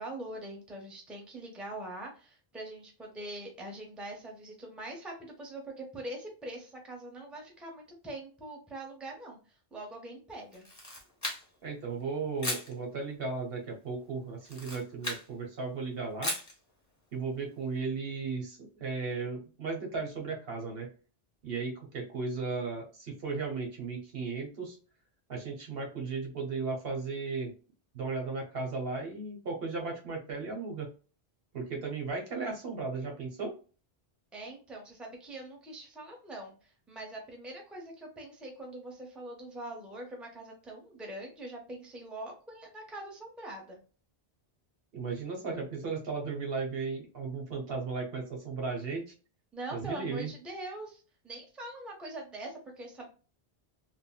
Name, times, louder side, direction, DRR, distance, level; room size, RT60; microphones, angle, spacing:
voice 1, 0.0-9.4 9.7-10.6 34.3-43.8 49.5-53.1, right 1 dB, ahead, 0 dB, 0.7 m, -43 dB
Camera, 10.5-11.7 12.4-12.7 14.4-15.3 16.2-16.6, left 1 dB, 20° left, 1.0 m, -36 dB
voice 2, 11.6-16.3 17.1-20.9 21.4-24.8 25.3-27.5 27.9-30.9 31.5-33.5 44.9-49.0 49.7-50.3, right 4 dB, 65° right, 1 dB, 1.2 m, -35 dB
3.6 x 2.1 x 2.3 m, 0.37 s
omnidirectional pair, 1.1 m